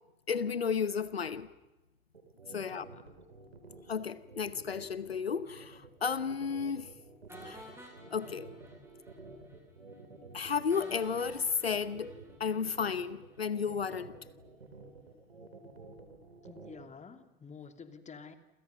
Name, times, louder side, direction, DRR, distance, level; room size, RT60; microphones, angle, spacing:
voice 1, 0.3-1.5 2.5-2.8 3.9-6.9 7.4-7.7 8.1-8.5 10.3-14.2, left 6 dB, 90° left, 16 dB, 1.0 m, -33 dB
sound 1, 2.1-16.9, right 3 dB, 85° right, 3.8 m, -51 dB
sound 2, 7.3-9.2 9.5-9.6 9.9-10.0 10.7-13.0, equal, 10° right, 7.8 m, -53 dB
voice 2, 16.4-18.4, left 5 dB, 25° left, 8 dB, 2.8 m, -50 dB
29.5 x 27.5 x 5.8 m, 1.0 s
figure-of-eight pair, 75°, 30 cm